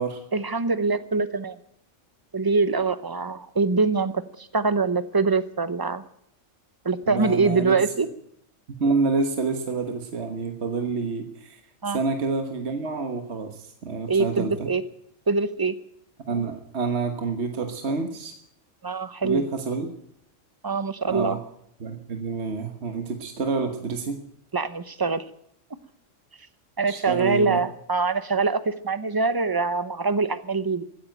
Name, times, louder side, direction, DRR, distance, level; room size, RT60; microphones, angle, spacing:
voice 1, 0.3-1.6 2.3-6.0 6.8-8.1 11.8-12.0 14.1-14.8 15.3-15.7 18.8-19.5 20.6-21.4 24.5-25.2 26.8-30.8, right 4 dB, 20° right, 13 dB, 0.7 m, -24 dB
voice 2, 7.1-7.8 8.7-11.6 11.9-14.7 16.3-18.3 19.2-19.9 21.0-21.4 21.8-24.2 26.9-27.6, right 4 dB, 60° right, 5 dB, 1.6 m, -28 dB
15.5 x 10.0 x 9.1 m, 0.73 s
omnidirectional pair, 1.3 m